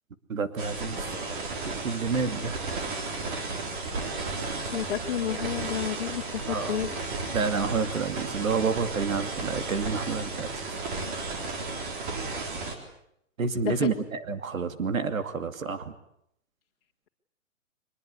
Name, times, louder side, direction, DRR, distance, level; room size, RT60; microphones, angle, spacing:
voice 1, 0.3-1.0 1.7-2.6 6.5-6.8 7.3-10.5 13.4-13.9 14.3-15.9, right 5 dB, 85° right, 9 dB, 2.6 m, -29 dB
sound 1, 0.6-12.7, right 3 dB, 40° right, 4.1 m, -33 dB
voice 2, 4.7-6.9 13.6-14.1, left 10 dB, 45° left, -2 dB, 1.8 m, -31 dB
24.0 x 21.0 x 8.4 m, 0.75 s
hypercardioid pair, 170°, 40 cm